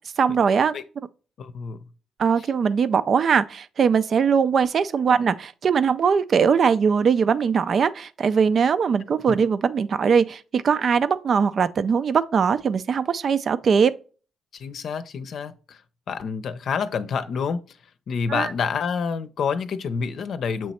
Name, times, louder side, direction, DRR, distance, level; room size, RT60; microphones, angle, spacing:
voice 1, 0.2-0.7 2.2-13.9 18.3-18.5, right 6 dB, 50° right, 0.5 m, -21 dB
voice 2, 1.4-1.8 2.4-2.5 9.3-9.4 14.5-15.8 16.1-17.8 18.1-20.7, left 6 dB, 60° left, 0.7 m, -28 dB
7.5 x 3.1 x 4.3 m
cardioid pair, 90°, 0 cm